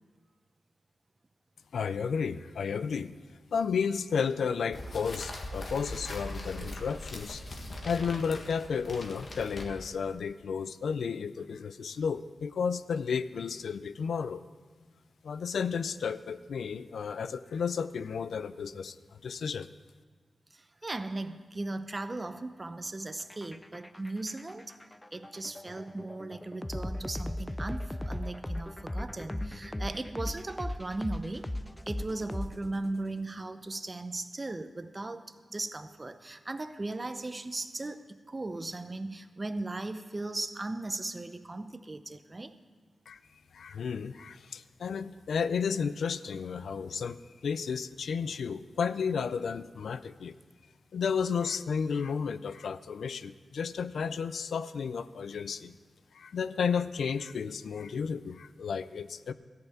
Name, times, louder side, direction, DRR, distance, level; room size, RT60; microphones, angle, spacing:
voice 1, 1.7-3.1 3.5-7.4 7.8-14.4 15.2-19.0 19.2-19.7 43.1-43.2 43.5-50.4 50.9-55.8 56.1-59.3, left 6 dB, 80° left, 14 dB, 0.4 m, -32 dB
sound 1, 4.7-10.0, left 1 dB, 55° left, 1.7 m, -41 dB
voice 2, 20.5-24.7 25.1-31.5 31.9-42.5, right 2 dB, 30° right, 10 dB, 0.7 m, -37 dB
sound 2, 23.2-33.0, left 1 dB, 15° left, 0.4 m, -38 dB
14.0 x 5.8 x 8.9 m, 1.5 s
cardioid pair, 80°, 0 cm